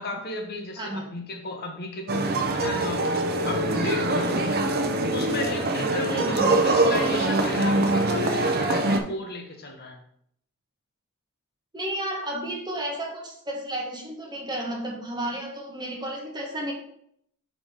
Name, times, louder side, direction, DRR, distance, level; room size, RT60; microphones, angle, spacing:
voice 1, 0.0-3.1 3.5-4.6 5.1-10.0, left 2 dB, 45° left, 2 dB, 1.0 m, -34 dB
voice 2, 0.8-1.1 4.2-4.6 6.1-6.6 11.7-16.7, right 1 dB, 20° right, 0 dB, 1.0 m, -32 dB
sound 1, 2.1-9.0, right 2 dB, 45° right, 0.6 m, -23 dB
4.9 x 3.9 x 5.1 m, 0.69 s
head